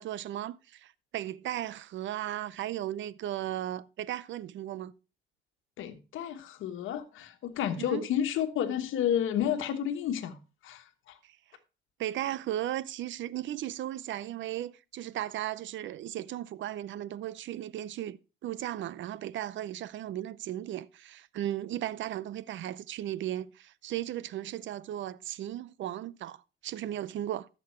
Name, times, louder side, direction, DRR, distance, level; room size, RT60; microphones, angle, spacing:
voice 1, 0.0-4.9 7.9-8.1 12.0-18.2 18.4-27.5, right 12 dB, 70° right, 0.6 m, -36 dB
voice 2, 5.8-10.4 10.6-11.1, left 9 dB, 85° left, 1.3 m, -31 dB
13.5 x 6.4 x 4.4 m
cardioid pair, 90°, 20 cm